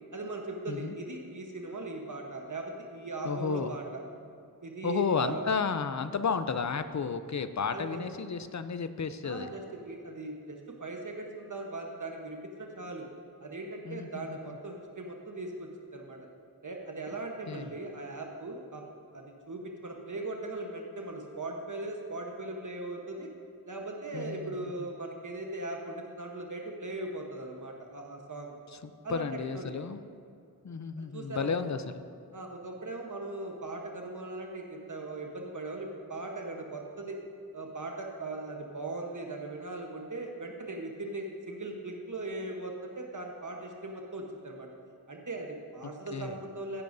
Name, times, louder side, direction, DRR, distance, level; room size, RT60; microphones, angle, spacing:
voice 1, 0.1-4.0 4.6-5.4 7.7-8.0 9.2-13.1 13.4-16.3 16.6-18.8 19.1-23.3 23.7-28.6 29.0-29.2 29.5-29.8 31.0-31.5 32.3-37.2 37.5-44.7 45.1-46.8, right 2 dB, 50° right, 1 dB, 1.1 m, -39 dB
voice 2, 3.2-3.8 4.8-9.5 13.8-14.6 17.5-17.8 24.1-24.9 28.7-30.0 30.6-32.0 45.8-46.4, left 5 dB, 50° left, 11 dB, 0.5 m, -33 dB
15.5 x 10.0 x 2.7 m, 2.5 s
wide cardioid pair, 80°, 38 cm